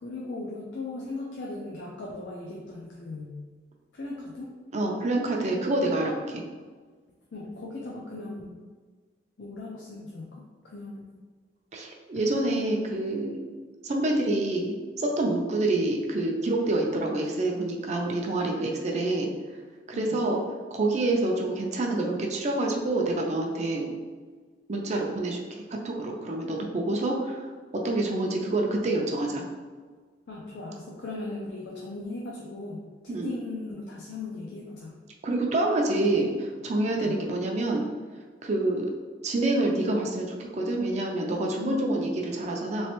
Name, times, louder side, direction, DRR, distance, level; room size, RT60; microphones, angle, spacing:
voice 1, 0.0-3.4 3.9-4.5 7.3-8.6 9.4-11.2 19.9-20.2 30.3-35.0 36.9-37.1 41.5-42.1, left 3 dB, 75° left, -4 dB, 0.5 m, -38 dB
voice 2, 4.7-6.4 11.7-13.4 13.8-19.3 19.9-20.4 20.7-23.9 24.7-25.4 25.8-27.5 27.8-29.4 33.1-33.3 35.2-37.9 38.4-38.9 39.2-42.9, right 2 dB, 40° right, 0 dB, 0.4 m, -27 dB
3.2 x 3.1 x 3.0 m, 1.5 s
head